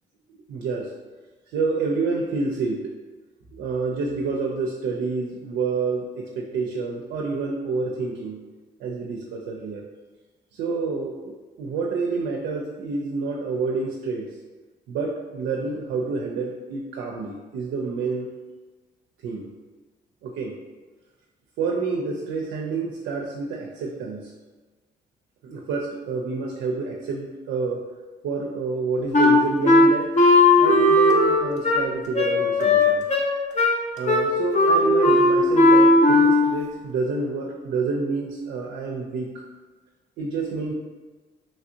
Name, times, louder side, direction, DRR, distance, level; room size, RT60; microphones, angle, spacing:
voice 1, 0.3-0.9 1.5-2.9 3.5-8.4 8.8-9.8 10.5-14.3 14.9-18.3 19.2-19.5 20.2-20.5 21.6-24.3 25.4-27.8 28.2-30.1 30.6-33.1 34.0-39.3 40.2-40.7, right 4 dB, 85° right, -1 dB, 0.4 m, -28 dB
Wind instrument woodwind instrument, 29.1-36.6, left 2 dB, 40° left, 0.6 m, -17 dB
3.0 x 2.4 x 2.7 m, 1.3 s
supercardioid pair, 65°, 18 cm